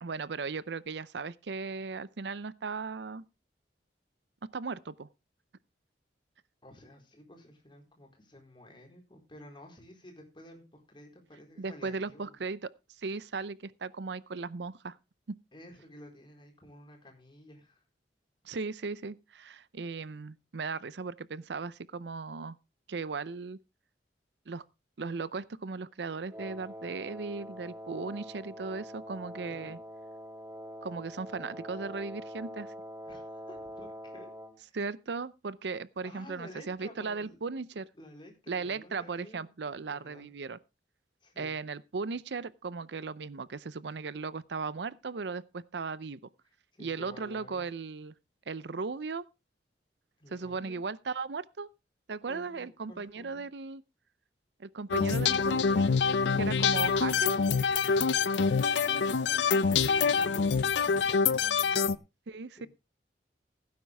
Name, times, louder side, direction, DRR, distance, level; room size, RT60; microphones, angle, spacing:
voice 1, 0.0-3.2 4.5-5.1 11.6-12.7 13.0-15.0 15.3-15.4 18.4-22.6 22.9-23.6 24.5-24.6 25.0-29.8 30.8-32.7 34.7-37.9 38.5-40.6 41.4-46.2 46.8-48.1 48.5-49.2 50.3-51.7 52.1-53.8 54.6-55.9 56.4-57.4 62.3-62.7, right 4 dB, 75° right, 0.6 m, -37 dB
voice 2, 6.6-12.4 15.5-17.8 29.5-29.8 33.1-34.3 34.6-34.8 36.0-37.4 37.9-40.3 41.2-41.5 46.7-47.6 50.2-50.8 52.2-53.5 59.5-62.0 62.6-62.7, left 1 dB, 30° left, 4.3 m, -52 dB
Wind instrument woodwind instrument, 26.3-34.6, equal, 15° right, 1.9 m, -44 dB
sound 1, 54.9-62.0, left 5 dB, 85° left, 0.6 m, -26 dB
16.0 x 9.6 x 3.4 m
head